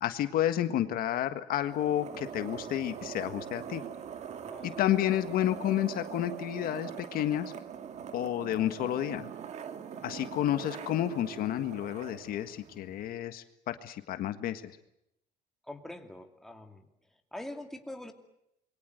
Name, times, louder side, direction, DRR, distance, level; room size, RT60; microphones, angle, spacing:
voice 1, 0.0-3.8 4.6-7.5 8.1-9.3 10.0-14.6, left 12 dB, 60° left, 10 dB, 1.7 m, -30 dB
sound 1, 1.6-13.1, right 8 dB, 40° right, 2.1 m, -43 dB
voice 2, 4.4-4.8 15.7-16.8 17.3-18.1, left 1 dB, ahead, 4 dB, 2.6 m, -43 dB
27.5 x 23.5 x 8.0 m, 0.78 s
cardioid pair, 155°, 17 cm